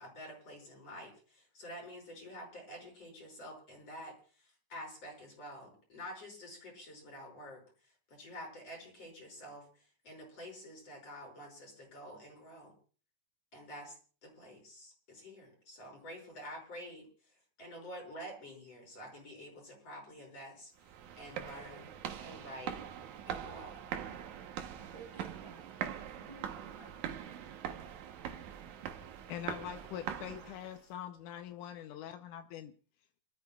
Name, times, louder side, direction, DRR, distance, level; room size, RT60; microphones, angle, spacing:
voice 1, 0.0-12.7 13.5-21.9 22.2-22.8 23.3-23.8, equal, 50° left, 0 dB, 7.2 m, -49 dB
sound 1, 20.8-30.8, right 9 dB, 75° right, 2.4 m, -43 dB
voice 2, 24.8-26.9, right 3 dB, 20° right, 2 dB, 2.8 m, -55 dB
voice 3, 29.3-32.7, left 10 dB, 80° left, 7 dB, 2.2 m, -43 dB
29.0 x 13.5 x 2.3 m, 0.40 s
omnidirectional pair, 3.5 m